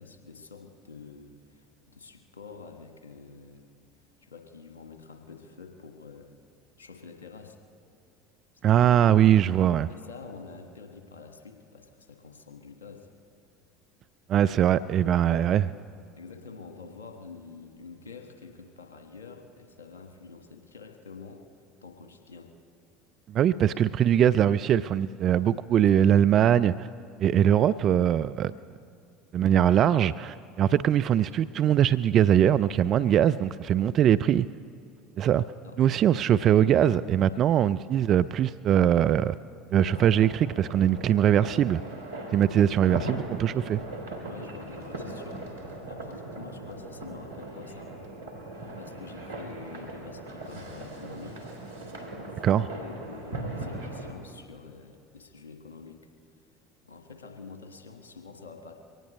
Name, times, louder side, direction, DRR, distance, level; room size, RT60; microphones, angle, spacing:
voice 1, 0.0-3.7 4.2-6.3 6.8-7.6 8.7-8.8 9.9-13.1 15.0-15.5 16.2-21.5 21.8-22.5 25.8-26.1 35.6-35.8 44.3-48.0 48.7-56.1 56.8-58.7, left 4 dB, 85° left, 5 dB, 1.5 m, -47 dB
voice 2, 8.6-9.9 14.3-15.6 23.3-26.9 27.2-28.5 29.3-34.5 35.2-35.4 35.8-39.3 39.7-41.8 42.3-43.8 52.4-52.6, right 10 dB, 45° right, 14 dB, 0.3 m, -22 dB
sound 1, 39.7-54.1, right 2 dB, 85° right, 2.1 m, -39 dB
23.5 x 18.0 x 3.2 m, 2.5 s
hypercardioid pair, 70°, 0 cm